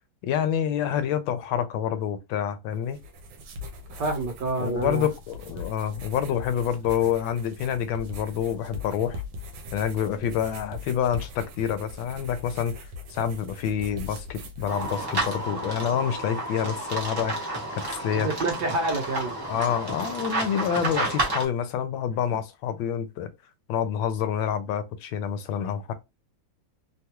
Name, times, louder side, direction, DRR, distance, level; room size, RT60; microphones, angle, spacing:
voice 1, 0.2-3.0 4.6-9.2 9.7-18.3 19.5-23.3 23.7-25.9, left 9 dB, 85° left, 1.3 m, -27 dB
sound 1, 2.7-15.5, left 2 dB, 90° right, 1.4 m, -41 dB
voice 2, 3.9-5.1 18.1-19.3, right 2 dB, 65° right, 1.3 m, -28 dB
sound 2, 14.7-21.4, right 2 dB, 35° right, 0.3 m, -31 dB
3.4 x 2.3 x 2.8 m
omnidirectional pair, 2.1 m